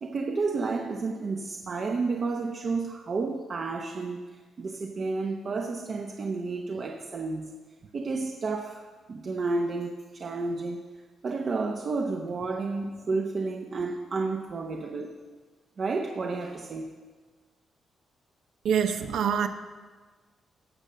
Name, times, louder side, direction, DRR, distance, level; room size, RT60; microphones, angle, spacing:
voice 1, 0.0-4.2 4.6-7.5 7.9-10.8 11.2-15.1 15.8-16.9, right 3 dB, 35° right, 2 dB, 0.8 m, -31 dB
voice 2, 18.6-19.5, right 8 dB, 85° right, 7 dB, 0.7 m, -25 dB
17.0 x 6.5 x 6.7 m, 1.4 s
cardioid pair, 160°, 0 cm